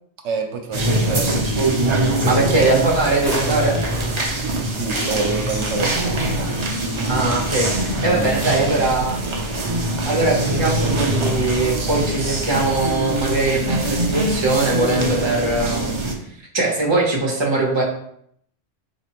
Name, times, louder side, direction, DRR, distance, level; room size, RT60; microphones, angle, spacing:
voice 1, 0.2-1.4 4.4-6.1, right 4 dB, 70° right, 4 dB, 0.9 m, -27 dB
sound 1, 0.7-16.1, right 1 dB, 45° right, 0.3 m, -23 dB
voice 2, 2.2-3.8 7.1-9.2 10.0-16.0 16.5-17.8, right 2 dB, 25° right, -2 dB, 0.8 m, -21 dB
sound 2, 3.2-5.8, left 1 dB, 65° left, 1.3 m, -36 dB
4.1 x 3.0 x 3.0 m, 0.68 s
omnidirectional pair, 1.3 m